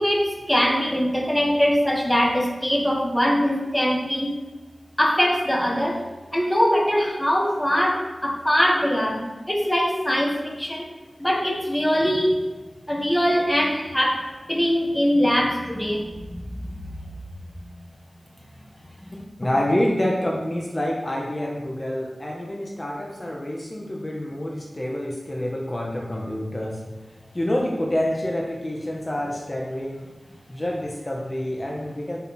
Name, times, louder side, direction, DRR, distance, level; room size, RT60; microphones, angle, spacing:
voice 1, 0.0-4.3 5.0-6.0 6.3-10.9 11.2-12.6 12.9-16.8, equal, 10° left, 0 dB, 1.5 m, -22 dB
voice 2, 19.4-26.8 27.3-30.1 30.5-32.2, left 1 dB, 30° left, -2 dB, 1.2 m, -27 dB
7.4 x 6.6 x 4.4 m, 1.2 s
wide cardioid pair, 80°, 0 cm